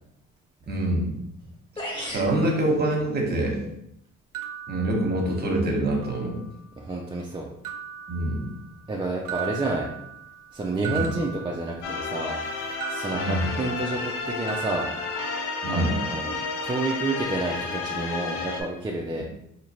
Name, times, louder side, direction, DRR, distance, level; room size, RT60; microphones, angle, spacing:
voice 1, 0.7-1.1 2.1-3.6 4.7-6.4 8.1-8.5 10.8-11.1 13.1-13.5 15.6-16.0, right 1 dB, 35° right, 0 dB, 1.1 m, -25 dB
sound 1, 1.4-1.5 1.8-2.3, equal, 15° left, 1.3 m, -33 dB
sound 2, 4.3-5.6 6.0-6.8 7.6-8.9 9.3-12.2 12.8-14.2 14.5-15.8, right 9 dB, 85° right, 0.5 m, -39 dB
voice 2, 6.8-7.5 8.9-9.9 10.5-12.4 12.9-14.0 14.3-14.9 15.7-16.3 16.6-19.2, right 2 dB, 15° right, -1 dB, 0.4 m, -29 dB
sound 3, 11.8-18.6, left 4 dB, 80° left, 0.7 m, -31 dB
3.9 x 2.8 x 3.0 m, 0.79 s
cardioid pair, 90°, 30 cm